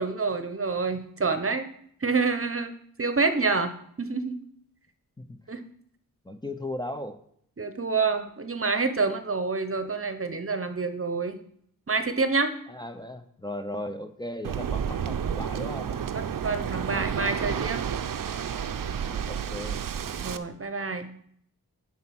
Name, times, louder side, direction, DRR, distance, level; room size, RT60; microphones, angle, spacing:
voice 1, 0.0-1.7 2.0-2.7 3.0-3.7 4.0-4.4 5.5-5.6 7.6-11.4 11.9-12.5 16.1-17.8 20.2-21.1, right 4 dB, 40° right, 9 dB, 0.8 m, -27 dB
voice 2, 6.2-7.2 12.7-16.0 18.9-19.8, left 1 dB, 10° left, 6 dB, 0.7 m, -37 dB
Waves surf, 14.4-20.4, right 8 dB, 65° right, 0.6 m, -31 dB
10.0 x 4.4 x 5.9 m, 0.67 s
wide cardioid pair, 65°, 36 cm